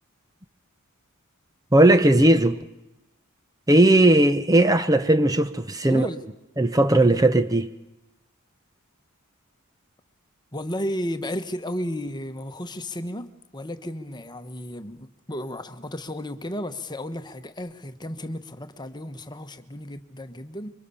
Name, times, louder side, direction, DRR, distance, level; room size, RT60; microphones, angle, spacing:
voice 1, 1.7-2.6 3.7-6.1 6.6-7.7, right 1 dB, 15° right, 0.8 m, -17 dB
voice 2, 5.8-6.2 10.5-13.3 13.5-20.7, equal, 20° left, 1.3 m, -33 dB
25.5 x 24.5 x 7.1 m
head